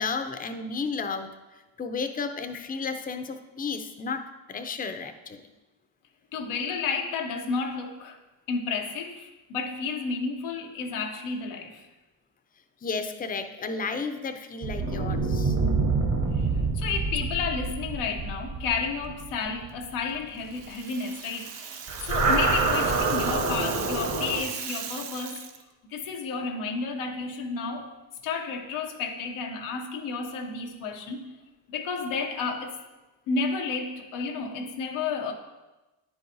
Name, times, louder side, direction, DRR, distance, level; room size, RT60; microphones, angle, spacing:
voice 1, 0.0-5.4 12.8-15.6, left 4 dB, 20° left, 0.5 m, -33 dB
voice 2, 6.3-8.2 8.5-11.9 16.3-25.5 25.9-27.9 28.2-31.3 31.7-32.8 33.3-35.3, left 4 dB, 85° left, 0.8 m, -31 dB
sound 1, 14.6-20.2 21.9-24.4, right 3 dB, 35° right, 1.0 m, -27 dB
Rattle (instrument), 20.4-25.6, right 8 dB, 60° right, 0.7 m, -38 dB
9.7 x 4.7 x 2.7 m
supercardioid pair, 55°, 48 cm